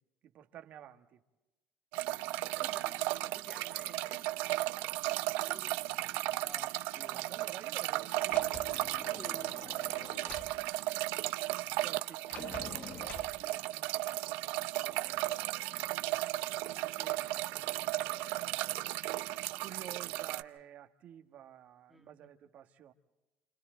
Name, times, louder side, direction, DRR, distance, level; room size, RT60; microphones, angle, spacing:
voice 1, 0.2-1.2 6.0-6.5 7.1-11.4 11.8-15.8 16.4-22.9, right 10 dB, 50° right, 6 dB, 1.7 m, -53 dB
sound 1, 1.9-20.4, right 18 dB, 85° right, 0.7 m, -35 dB
voice 2, 2.4-4.5 5.5-5.8 6.4-7.5 9.1-9.6 21.9-22.3, right 2 dB, 5° right, 3 dB, 2.0 m, -54 dB
Sliding door, 8.3-10.5 12.3-13.3, left 6 dB, 40° left, 1.3 m, -47 dB
29.5 x 28.5 x 3.9 m, 1.1 s
cardioid pair, 140°, 3 cm